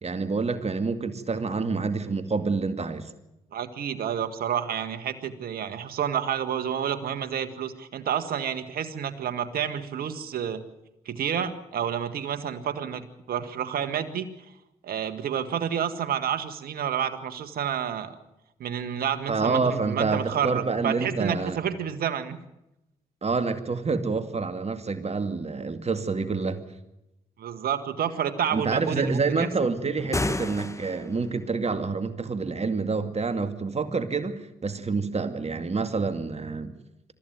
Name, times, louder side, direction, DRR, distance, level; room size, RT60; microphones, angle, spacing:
voice 1, 0.0-3.1 19.3-21.6 23.2-26.6 28.5-36.7, right 4 dB, 45° right, 10 dB, 2.3 m, -27 dB
voice 2, 3.5-10.6 11.1-14.3 14.8-18.1 18.6-22.4 27.4-29.5, right 9 dB, 75° right, 10 dB, 1.8 m, -29 dB
sound 1, 30.0-31.3, left 2 dB, 20° left, 1.8 m, -30 dB
23.0 x 14.5 x 9.4 m, 0.90 s
supercardioid pair, 45°, 15 cm